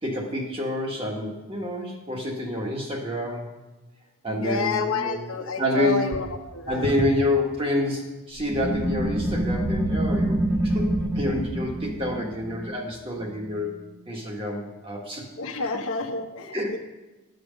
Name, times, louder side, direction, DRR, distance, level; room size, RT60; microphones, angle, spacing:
voice 1, 0.0-3.5 4.2-5.2 5.6-6.1 6.7-13.8 14.1-15.2 16.5-16.8, left 1 dB, 25° right, 0 dB, 1.6 m, -28 dB
voice 2, 4.3-6.3 6.5-6.9 15.4-16.8, left 3 dB, 70° left, 3 dB, 1.2 m, -29 dB
sound 1, 8.4-13.7, right 1 dB, 5° right, 0.8 m, -27 dB
11.5 x 7.9 x 5.3 m, 1.1 s
head